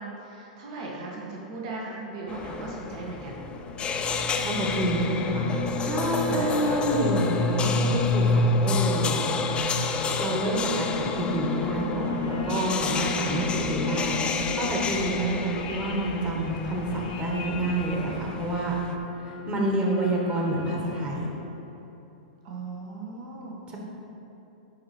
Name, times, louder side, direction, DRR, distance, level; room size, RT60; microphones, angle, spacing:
voice 1, 0.0-3.4 6.3-6.8 22.4-23.6, right 3 dB, 55° right, -3 dB, 1.5 m, -37 dB
sound 1, 2.3-19.0, left 5 dB, 25° left, 0.5 m, -32 dB
sound 2, 3.1-21.5, left 2 dB, 65° left, 0.9 m, -31 dB
voice 2, 4.4-5.5 5.8-9.2 10.2-18.7 19.2-21.3 23.7-23.8, right 1 dB, 25° right, -1 dB, 1.7 m, -28 dB
10.5 x 4.6 x 4.5 m, 3.0 s
hypercardioid pair, 110°, 4 cm